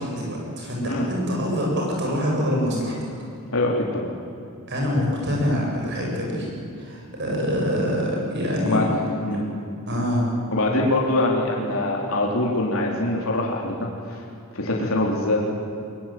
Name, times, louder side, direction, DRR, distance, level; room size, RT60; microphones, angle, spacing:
voice 1, 0.0-3.0 4.7-6.5 6.8-8.8 9.9-10.2, equal, 50° right, -2 dB, 7.9 m, -25 dB
voice 2, 3.5-4.1 8.6-8.9 9.2-9.4 10.5-14.2 14.5-15.5, left 1 dB, 70° left, -2 dB, 3.9 m, -23 dB
23.0 x 23.0 x 9.3 m, 2.6 s
head